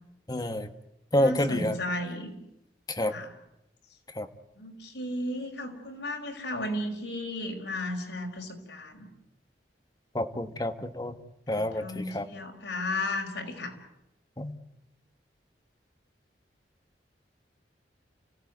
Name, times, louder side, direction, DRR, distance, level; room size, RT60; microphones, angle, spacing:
voice 1, 0.3-0.7 1.1-1.7 2.9-3.1 4.2-4.3 10.1-11.1 11.5-12.2 14.4-14.5, left 1 dB, 20° left, 8 dB, 1.4 m, -28 dB
voice 2, 1.2-2.3 3.0-3.3 4.6-9.1 11.5-13.7, left 1 dB, 85° left, 3 dB, 5.1 m, -34 dB
29.0 x 16.0 x 9.4 m, 0.86 s
head